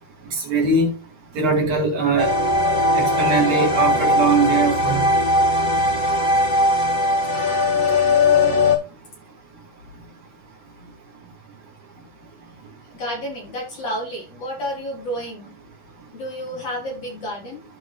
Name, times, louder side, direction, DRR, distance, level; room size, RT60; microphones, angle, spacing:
voice 1, 0.3-0.9 1.3-2.3 2.9-5.1, right 3 dB, 60° right, 3.6 m, -21 dB
sound 1, 2.2-8.8, left 2 dB, 20° left, 1.4 m, -19 dB
voice 2, 12.9-15.5 16.1-17.6, equal, 40° left, 4.1 m, -30 dB
14.5 x 4.9 x 2.4 m
omnidirectional pair, 3.9 m